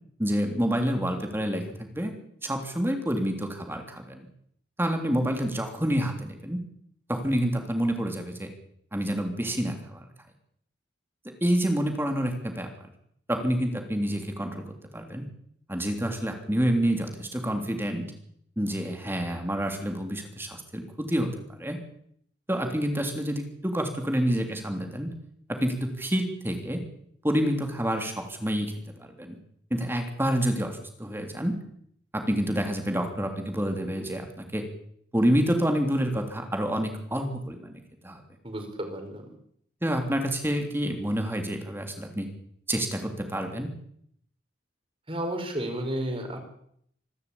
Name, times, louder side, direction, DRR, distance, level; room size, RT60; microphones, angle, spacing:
voice 1, 0.2-2.1 2.4-4.2 4.8-6.6 7.1-8.5 8.9-10.0 11.4-12.7 13.3-15.2 15.7-18.0 18.6-21.3 21.6-21.8 22.5-25.1 25.5-26.8 27.2-28.7 29.0-29.4 29.7-31.6 32.1-34.7 35.1-38.2 39.8-42.3 42.7-43.7, equal, 10° right, 4 dB, 3.2 m, -28 dB
voice 2, 38.4-39.2 45.1-46.5, right 1 dB, 30° right, 4 dB, 5.1 m, -32 dB
26.0 x 12.5 x 8.7 m, 0.69 s
head